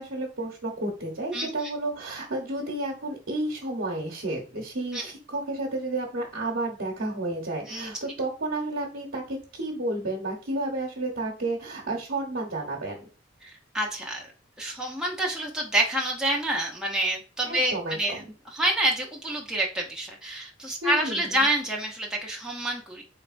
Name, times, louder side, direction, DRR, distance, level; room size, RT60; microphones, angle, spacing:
voice 1, 0.0-13.0 17.4-18.3 20.8-21.5, right 2 dB, 70° right, -3 dB, 1.0 m, -31 dB
voice 2, 1.3-1.7 4.9-5.0 7.7-8.0 13.4-14.2 14.6-18.2 18.5-23.0, right 1 dB, 5° right, -1 dB, 0.6 m, -28 dB
4.1 x 3.3 x 2.5 m, 0.36 s
head